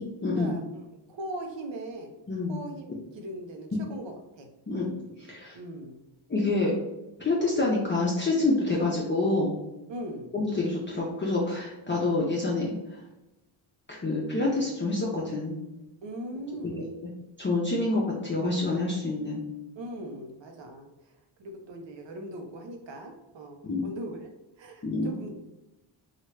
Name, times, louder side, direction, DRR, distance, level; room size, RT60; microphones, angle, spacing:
voice 1, 0.2-0.5 2.3-2.6 4.7-4.9 5.3-5.6 6.3-6.8 7.2-9.6 10.3-12.7 13.9-15.6 16.6-16.8 17.4-19.4 23.6-23.9 24.8-25.1, left 2 dB, 25° left, -4 dB, 0.6 m, -27 dB
voice 2, 1.1-2.1 2.5-4.5 5.5-6.0 9.9-10.3 16.0-16.9 19.8-20.9 21.4-24.3 24.6-25.3, right 1 dB, 65° right, 4 dB, 0.7 m, -39 dB
3.0 x 2.4 x 3.1 m, 0.97 s
cardioid pair, 85°, 48 cm